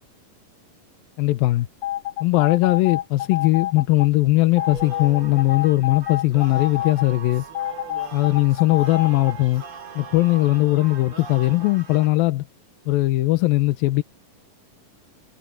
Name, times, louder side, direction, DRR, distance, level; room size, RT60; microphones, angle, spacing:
voice 1, 1.2-1.7 2.2-7.4 8.1-9.6 10.0-12.5 12.9-14.0, left 18 dB, 85° left, 2.5 m, -19 dB
sound 1, 1.8-4.1 4.6-7.1 7.5-9.3, left 13 dB, 60° left, 2.6 m, -28 dB
sound 2, 4.6-12.1, right 5 dB, 35° right, 4.0 m, -40 dB
omnidirectional pair, 4.2 m